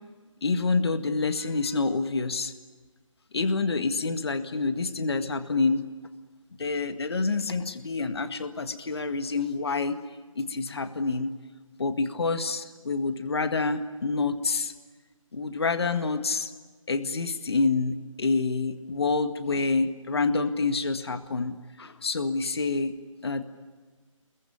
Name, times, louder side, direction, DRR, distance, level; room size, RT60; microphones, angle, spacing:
voice 1, 0.4-2.5 3.3-5.9 6.6-10.0 10.4-11.3 11.8-14.7 15.3-16.5 16.9-23.4, left 3 dB, 50° left, 9 dB, 1.8 m, -27 dB
29.5 x 22.5 x 8.7 m, 1.4 s
figure-of-eight pair, 160°, 17 cm